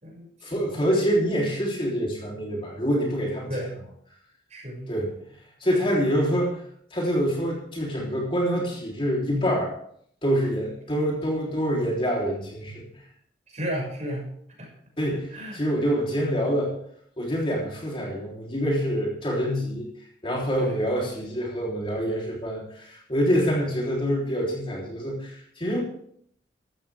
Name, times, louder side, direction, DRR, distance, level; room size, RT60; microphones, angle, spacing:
voice 1, 0.4-3.5 4.9-5.1 5.6-6.6 6.9-9.7 10.2-12.8 15.0-16.7 17.2-19.9 20.2-25.8, equal, 30° left, -3 dB, 3.7 m, -26 dB
voice 2, 3.5-3.8 4.5-4.9 13.5-14.3 14.6-14.7 15.1-15.6 20.6-20.7, equal, 40° right, -2 dB, 6.7 m, -33 dB
15.0 x 14.0 x 3.6 m, 0.66 s
head